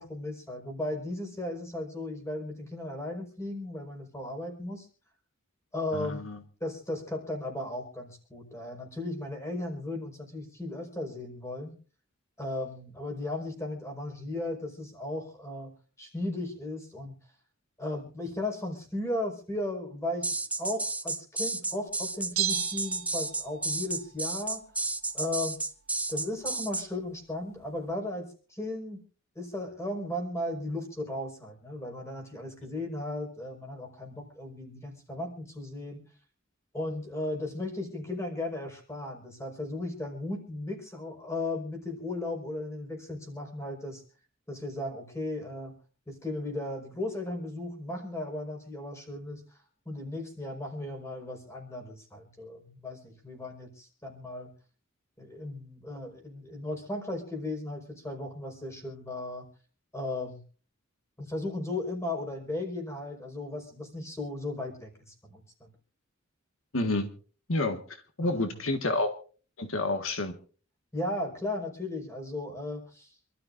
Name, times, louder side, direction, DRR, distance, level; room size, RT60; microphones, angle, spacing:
voice 1, 0.0-4.9 5.7-6.3 6.6-11.8 12.4-15.7 16.0-17.1 17.8-24.6 25.1-25.6 26.1-29.0 29.3-36.0 36.7-44.0 44.5-45.7 46.1-49.4 49.8-54.5 55.2-59.4 59.9-60.4 61.2-65.7 68.2-68.5 70.9-73.1, left 1 dB, 15° left, 2 dB, 4.9 m, -36 dB
voice 2, 5.9-6.4 66.7-67.1 67.5-67.8 68.2-69.1 69.6-70.3, left 2 dB, 80° left, 7 dB, 1.7 m, -29 dB
sound 1, 20.2-26.9, right 3 dB, 5° right, 0.9 m, -32 dB
Bell, 22.4-23.8 24.0-24.1, right 12 dB, 90° right, 1.9 m, -33 dB
27.5 x 13.0 x 2.6 m, 0.38 s
head